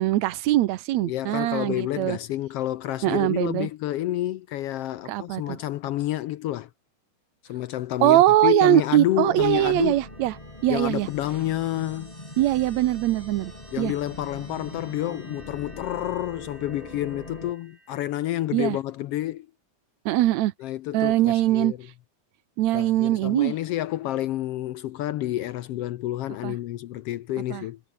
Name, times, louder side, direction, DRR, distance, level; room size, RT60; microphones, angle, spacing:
voice 1, 0.0-2.2 3.0-3.7 5.1-5.6 8.0-10.3 10.6-11.1 12.4-13.5 13.8-13.9 18.5-18.8 20.1-20.5 20.9-21.7 22.6-23.5 26.4-26.6 27.5-27.6, right 15 dB, 70° right, 2.0 m, -22 dB
voice 2, 1.0-6.7 7.4-10.0 10.7-12.1 13.7-19.5 20.6-21.8 22.7-27.8, left 14 dB, 75° left, 1.4 m, -29 dB
sound 1, 9.2-17.5, left 1 dB, 10° left, 4.0 m, -42 dB
sound 2, 9.3-18.6, right 1 dB, 15° right, 5.7 m, -53 dB
omnidirectional pair, 3.5 m